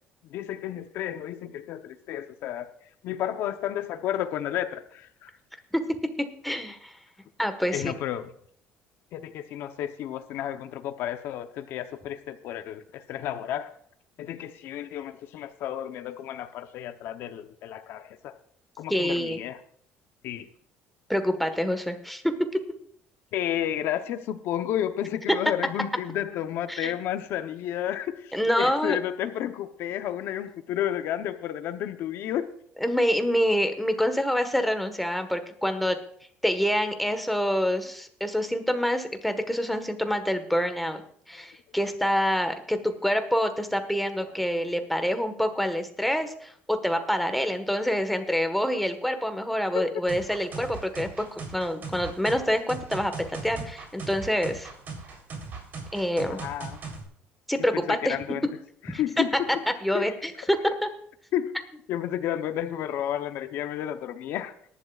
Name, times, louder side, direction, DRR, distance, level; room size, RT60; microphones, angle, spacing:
voice 1, 0.3-2.7 3.0-5.3 7.7-8.3 9.1-13.7 14.2-18.4 18.8-19.6 20.2-20.5 23.3-32.5 41.3-41.4 45.0-45.1 49.7-49.9 56.3-56.8 57.7-58.5 58.8-59.5 59.9-60.1 61.3-61.5 61.9-64.5, left 11 dB, 70° left, 8 dB, 0.8 m, -32 dB
voice 2, 6.2-6.9 7.4-7.9 18.9-19.4 21.1-22.6 25.3-25.4 26.7-26.9 28.3-29.0 32.8-36.0 36.4-41.0 41.3-51.3 51.5-54.7 55.9-56.4 57.5-58.2 58.9-59.2 59.8-60.9, equal, ahead, 7 dB, 1.4 m, -26 dB
sound 1, 50.1-57.0, right 4 dB, 50° right, 3.7 m, -39 dB
21.5 x 11.5 x 2.4 m, 0.64 s
cardioid pair, 120°, 4 cm